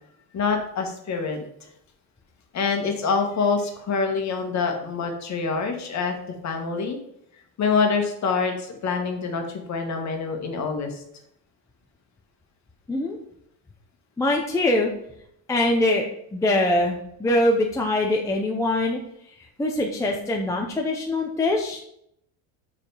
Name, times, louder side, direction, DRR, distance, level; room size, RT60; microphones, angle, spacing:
voice 1, 0.3-1.7 2.5-6.1 6.4-7.0 7.6-11.0, left 5 dB, 40° left, 4 dB, 1.4 m, -26 dB
voice 2, 14.2-14.9 15.5-16.0 16.3-19.0 19.6-21.8, left 1 dB, 5° left, 0 dB, 0.5 m, -23 dB
6.7 x 5.0 x 5.4 m, 0.73 s
cardioid pair, 160°, 45 cm